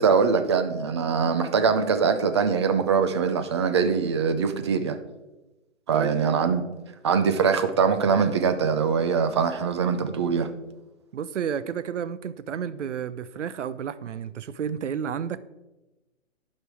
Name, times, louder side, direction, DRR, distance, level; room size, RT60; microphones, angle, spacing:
voice 1, 0.0-5.0 5.9-6.6 7.0-10.5, right 6 dB, 20° right, 9 dB, 0.6 m, -23 dB
voice 2, 11.1-15.4, right 8 dB, 65° right, 15 dB, 0.8 m, -31 dB
11.5 x 5.4 x 6.1 m, 1.0 s
hypercardioid pair, 160°, 38 cm